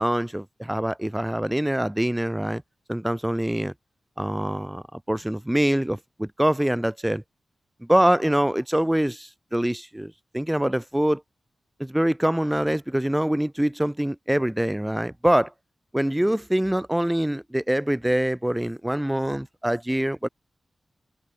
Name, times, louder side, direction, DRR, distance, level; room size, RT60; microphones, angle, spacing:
voice 1, 0.0-2.6 2.9-3.7 4.2-7.2 7.9-11.2 11.8-15.5 15.9-20.3, right 1 dB, 10° right, 2.2 m, -24 dB
cardioid pair, 65°, 0 cm